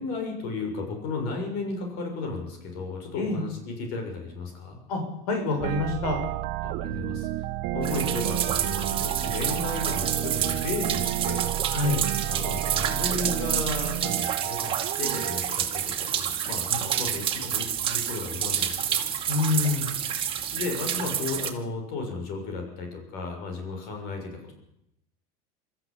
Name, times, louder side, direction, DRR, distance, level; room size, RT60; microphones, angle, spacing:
voice 1, 0.0-4.8 6.6-7.3 7.7-11.5 12.2-19.0 20.5-24.5, left 3 dB, 55° left, 3 dB, 6.7 m, -34 dB
voice 2, 5.3-6.2 11.7-12.0 16.7-16.8 19.3-19.9, left 3 dB, 85° left, 3 dB, 6.1 m, -26 dB
sound 1, 5.6-15.4, right 14 dB, 55° right, 1.3 m, -31 dB
sound 2, 7.8-21.5, right 9 dB, 30° right, 2.4 m, -29 dB
24.5 x 14.0 x 8.5 m, 0.81 s
supercardioid pair, 140°, 19 cm